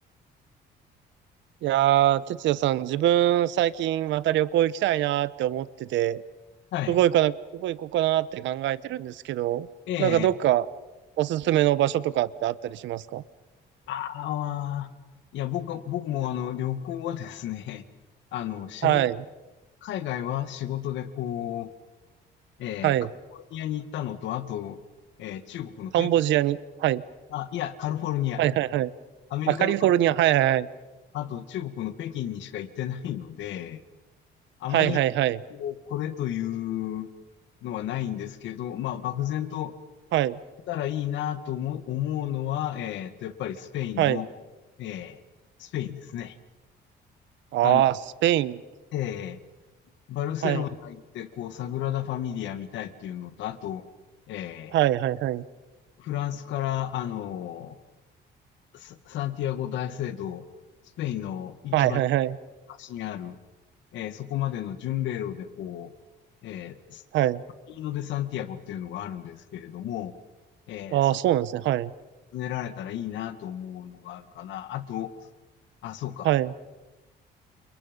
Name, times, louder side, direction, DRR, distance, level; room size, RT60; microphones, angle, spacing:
voice 1, 1.6-6.2 6.9-9.7 10.0-10.7 11.2-13.2 18.8-19.2 22.8-23.1 25.9-27.0 28.4-28.9 29.5-30.7 34.7-35.4 40.1-40.4 44.0-44.2 47.5-48.0 48.2-48.6 50.4-50.6 54.7-55.4 61.7-62.4 67.1-67.4 70.9-71.9 76.2-76.5, right 13 dB, 80° right, 17 dB, 1.0 m, -23 dB
voice 2, 9.9-10.3 13.9-14.9 15.3-17.8 18.3-19.0 19.8-21.7 22.6-22.9 23.3-24.8 25.2-26.1 27.3-28.4 29.3-30.1 31.1-33.8 34.6-35.0 35.5-37.1 37.6-39.7 40.7-44.3 44.8-45.2 45.6-46.4 47.6-47.8 48.9-49.4 50.1-53.8 54.3-54.8 56.0-57.8 58.7-60.4 61.0-62.0 62.7-63.4 63.9-65.9 66.4-67.0 67.7-70.1 70.7-71.1 72.3-75.1 75.8-76.3, left 11 dB, 80° left, 11 dB, 2.0 m, -32 dB
30.0 x 28.0 x 5.4 m, 1.1 s
cardioid pair, 160°, 19 cm